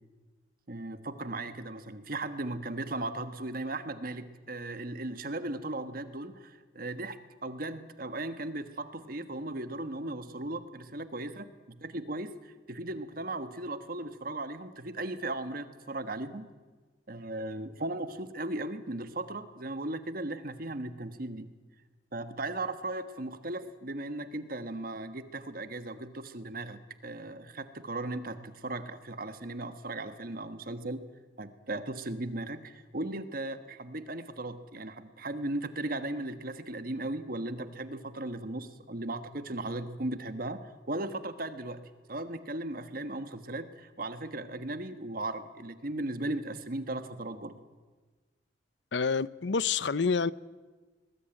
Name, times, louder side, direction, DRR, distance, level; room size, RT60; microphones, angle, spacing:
voice 1, 0.7-16.4 17.1-21.5 22.1-31.0 31.4-41.8 42.1-47.5, right 2 dB, 50° right, 1.4 m, -37 dB
voice 2, 48.9-50.3, left 5 dB, 75° left, 0.7 m, -28 dB
22.5 x 20.0 x 9.0 m
head